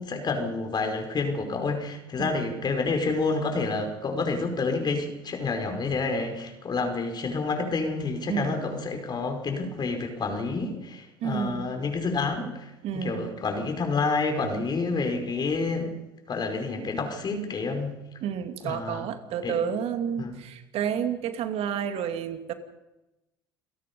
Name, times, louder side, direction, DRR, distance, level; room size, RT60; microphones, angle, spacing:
voice 1, 0.0-15.9 16.3-18.0 18.6-19.1 19.4-19.6 20.2-20.4, left 3 dB, 40° left, 5 dB, 5.2 m, -29 dB
voice 2, 2.2-2.6 8.3-8.7 11.2-11.7 12.8-13.4 18.2-22.5, right 8 dB, 60° right, 8 dB, 2.5 m, -30 dB
28.5 x 17.5 x 5.4 m, 0.97 s
hypercardioid pair, 70°, 12 cm